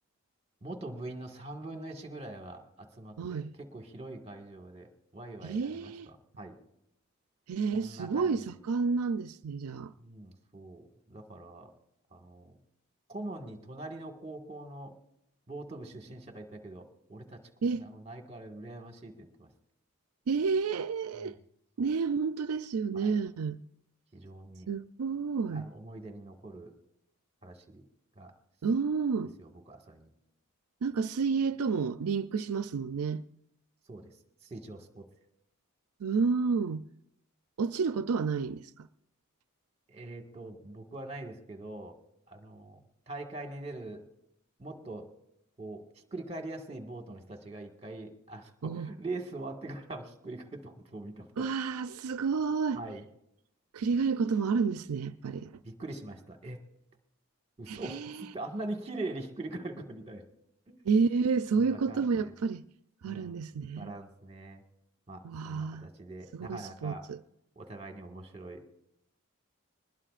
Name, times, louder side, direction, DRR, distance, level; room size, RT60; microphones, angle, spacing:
voice 1, 0.6-6.6 7.7-8.4 10.0-11.7 12.1-12.6 13.1-14.9 15.5-17.4 17.8-19.5 21.2-21.3 21.8-21.9 22.9-23.1 24.1-24.7 25.5-26.7 27.4-27.8 28.1-28.3 29.4-30.1 33.9-34.1 34.4-35.1 39.9-42.0 42.3-44.0 44.6-45.1 45.6-45.8 46.1-51.5 52.7-53.0 55.6-56.6 57.6-60.2 60.7-60.8 61.5-62.3 63.0-63.4 63.8-64.6 65.1-67.0 67.5-68.6, right 2 dB, 30° right, 1.6 m, -43 dB
voice 2, 3.2-3.5 5.4-6.1 7.5-9.9 17.6-17.9 20.3-21.4 21.8-23.6 24.7-25.7 28.6-29.3 30.8-33.2 36.0-36.8 37.6-38.9 48.6-48.9 51.4-52.8 53.7-55.5 57.7-58.3 60.8-62.6 63.0-63.9 65.2-65.9 66.3-67.2, right 5 dB, 85° right, 0.4 m, -30 dB
23.0 x 20.0 x 2.5 m
head